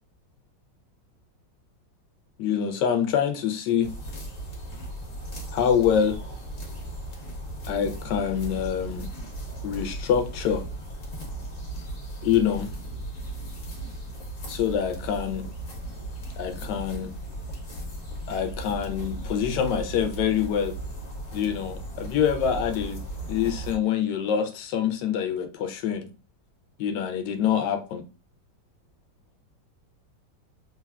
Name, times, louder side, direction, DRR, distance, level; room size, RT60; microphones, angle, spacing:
voice 1, 2.4-3.9 5.5-6.2 7.7-9.1 9.6-10.6 12.2-12.7 14.5-15.4 16.4-17.1 18.3-20.7 21.3-23.0 23.3-26.1 26.8-28.0, left 8 dB, 80° left, 7 dB, 1.2 m, -25 dB
sound 1, 3.8-23.8, right 1 dB, 55° left, 1.1 m, -36 dB
3.4 x 2.2 x 2.2 m, 0.33 s
omnidirectional pair, 1.9 m